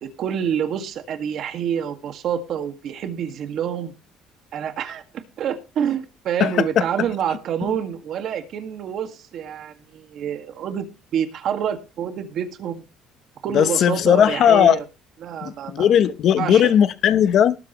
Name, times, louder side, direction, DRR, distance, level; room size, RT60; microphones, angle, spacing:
voice 1, 0.0-3.9 4.5-5.0 5.4-10.9 11.1-12.9 13.4-14.8 15.2-15.9 16.4-16.8, right 8 dB, 50° right, 1.9 m, -27 dB
voice 2, 6.4-6.8 13.5-14.8 15.4-17.6, left 9 dB, 50° left, 0.9 m, -17 dB
19.5 x 8.7 x 3.1 m
cardioid pair, 150°, 0 cm